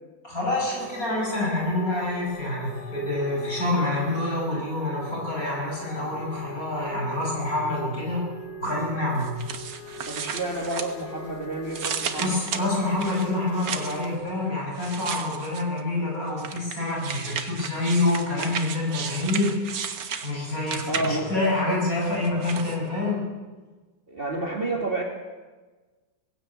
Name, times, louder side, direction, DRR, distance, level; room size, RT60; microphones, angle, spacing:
voice 1, 0.2-8.3 8.6-9.4 12.2-19.5 20.2-23.2, left 2 dB, 50° left, -2 dB, 6.4 m, -27 dB
sound 1, 0.7-14.2, left 1 dB, 80° left, 6.2 m, -41 dB
sound 2, 9.2-11.3 11.7-14.1 14.8-15.8 16.4-21.4 22.0-22.8, right 7 dB, 70° right, 1.9 m, -34 dB
voice 2, 10.0-12.3 20.9-21.3 24.1-25.0, right 2 dB, 30° right, 1 dB, 2.4 m, -30 dB
19.0 x 16.0 x 8.6 m, 1.3 s
omnidirectional pair, 1.9 m